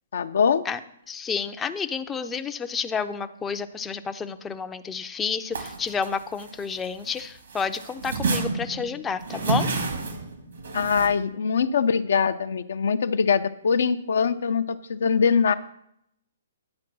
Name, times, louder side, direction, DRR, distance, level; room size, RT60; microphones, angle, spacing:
voice 1, 0.1-0.6 10.7-15.5, left 6 dB, 70° left, 11 dB, 0.5 m, -23 dB
voice 2, 1.1-9.7, left 6 dB, 15° left, 8 dB, 0.4 m, -30 dB
sound 1, 5.5-7.2 7.5-11.1, right 4 dB, 75° right, 1.8 m, -29 dB
9.6 x 4.5 x 6.0 m, 0.75 s
hypercardioid pair, 135°, 0 cm